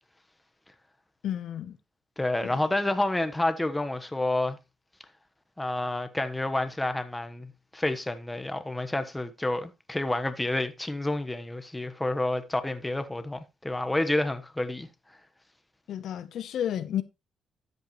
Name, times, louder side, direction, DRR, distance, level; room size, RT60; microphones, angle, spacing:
voice 1, 1.2-1.8 2.4-2.6 15.9-17.0, left 10 dB, 70° left, 0.8 m, -32 dB
voice 2, 2.2-4.6 5.6-14.9, left 2 dB, 10° left, 1.2 m, -29 dB
13.0 x 8.0 x 3.1 m
cardioid pair, 90°, 0 cm